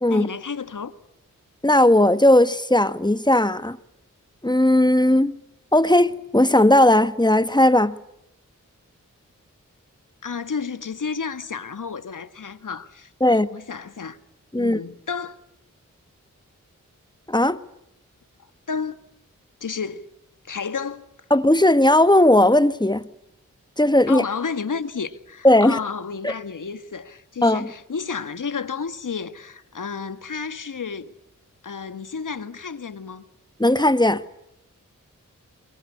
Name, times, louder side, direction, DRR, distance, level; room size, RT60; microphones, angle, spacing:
voice 1, 0.1-0.9 10.2-14.2 14.5-15.4 18.7-19.0 19.6-20.1 20.4-21.0 24.1-31.1 31.6-33.2, left 5 dB, 70° left, 1.7 m, -31 dB
voice 2, 1.6-3.8 4.4-5.4 5.7-8.0 13.2-13.5 14.5-14.8 17.3-17.6 21.3-23.0 23.8-24.2 25.4-25.8 26.2-26.3 27.4-27.7 33.6-34.2, left 1 dB, 15° left, 1.4 m, -17 dB
27.5 x 22.0 x 8.5 m
cardioid pair, 40°, 32 cm